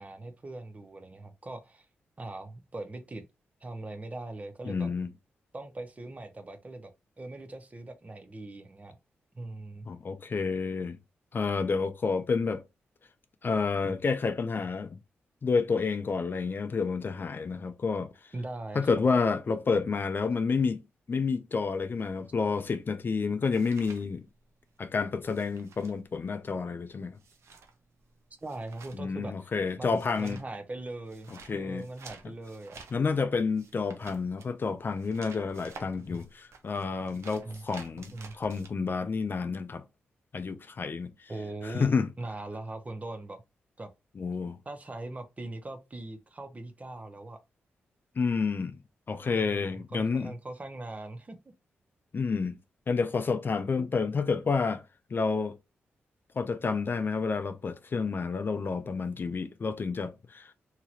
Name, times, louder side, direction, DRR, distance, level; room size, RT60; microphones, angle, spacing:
voice 1, 0.0-1.9 2.2-3.3 3.6-4.9 5.5-8.9 9.3-9.9 18.3-18.9 28.4-29.5 29.8-32.8 37.4-37.6 37.9-38.4 41.3-43.4 43.8-43.9 44.7-47.4 49.1-51.5, right 2 dB, 30° right, 0.7 m, -41 dB
voice 2, 4.6-5.1 9.9-11.0 11.3-12.6 13.4-15.0 15.4-18.1 18.7-20.8 21.1-24.2 24.8-27.2 28.9-30.4 31.5-31.8 32.9-39.8 40.3-41.3 41.6-42.1 44.2-44.6 48.2-48.8 49.1-50.3 52.1-52.6 52.9-54.8 55.1-55.6 56.4-60.5, left 4 dB, 45° left, 0.5 m, -29 dB
sound 1, 23.0-24.8 25.0-38.7, right 4 dB, 70° right, 0.6 m, -52 dB
2.9 x 2.9 x 2.4 m
cardioid pair, 55°, 5 cm